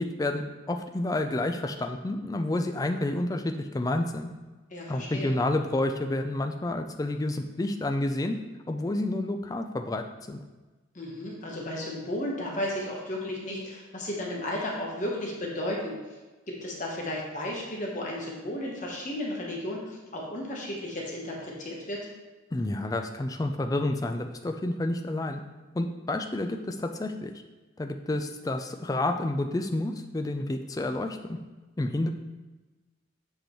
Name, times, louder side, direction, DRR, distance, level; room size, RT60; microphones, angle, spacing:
voice 1, 0.0-4.3 4.9-8.4 8.7-10.4 22.5-25.4 25.7-27.3 27.8-31.4 31.8-32.1, left 2 dB, 20° left, 6 dB, 0.3 m, -29 dB
voice 2, 4.7-5.3 10.9-15.9 16.5-22.1, left 1 dB, 40° left, -2 dB, 1.1 m, -34 dB
7.6 x 4.9 x 3.0 m, 1.2 s
head